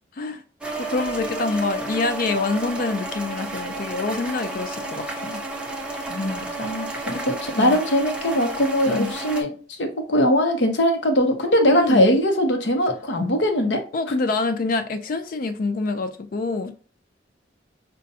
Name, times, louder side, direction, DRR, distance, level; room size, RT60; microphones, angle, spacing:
sound 1, 0.6-9.4, right 2 dB, 5° right, 0.5 m, -31 dB
voice 1, 0.8-5.4 7.6-7.8 8.9-9.1 11.7-12.1 13.9-16.7, left 3 dB, 50° left, 0.4 m, -26 dB
voice 2, 6.1-13.8, equal, 70° left, 0.8 m, -21 dB
5.3 x 2.2 x 2.6 m
head